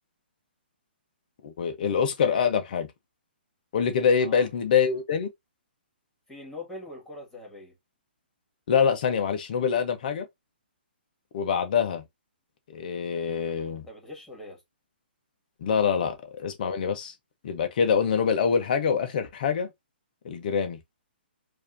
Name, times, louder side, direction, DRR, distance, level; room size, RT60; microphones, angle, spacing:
voice 1, 1.4-2.9 3.7-5.3 8.7-10.3 11.3-12.0 12.7-13.9 15.6-17.1 17.4-19.7 20.2-20.8, left 6 dB, 50° left, 1.2 m, -25 dB
voice 2, 6.3-7.8 13.9-14.6, left 2 dB, 5° left, 2.4 m, -42 dB
4.7 x 2.9 x 2.8 m
hypercardioid pair, 135°, 6 cm